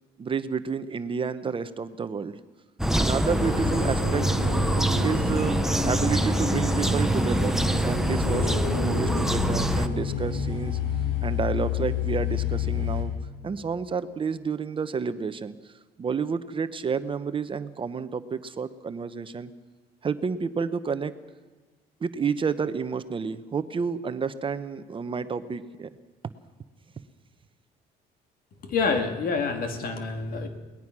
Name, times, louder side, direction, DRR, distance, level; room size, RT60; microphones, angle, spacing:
voice 1, 0.2-2.4 2.9-4.2 5.0-8.5 8.8-10.8 11.2-13.1 13.4-15.5 16.0-19.5 20.0-21.1 22.0-25.9, right 5 dB, 30° right, 11 dB, 0.9 m, -30 dB
sound 1, 2.8-9.9, right 1 dB, ahead, 0.9 m, -25 dB
sound 2, 3.2-13.0, left 3 dB, 85° left, 4.6 m, -28 dB
voice 2, 28.6-30.5, left 4 dB, 60° left, 6 dB, 2.6 m, -27 dB
22.5 x 19.0 x 6.1 m, 1.3 s
cardioid pair, 110°, 17 cm